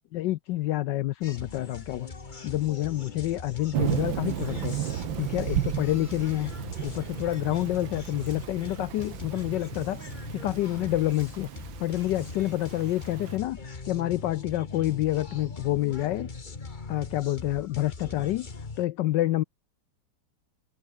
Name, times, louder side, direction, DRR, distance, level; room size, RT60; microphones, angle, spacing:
voice 1, 0.1-2.1 2.4-4.7 5.2-6.5 6.8-11.5 11.8-13.6 13.9-16.3 16.9-18.5 18.8-19.4, left 15 dB, 75° left, 1.0 m, -28 dB
sound 1, 1.2-18.8, left 4 dB, 25° left, 1.5 m, -41 dB
Thunder / Rain, 3.7-13.4, right 11 dB, 70° right, 1.7 m, -34 dB
omnidirectional pair, 2.3 m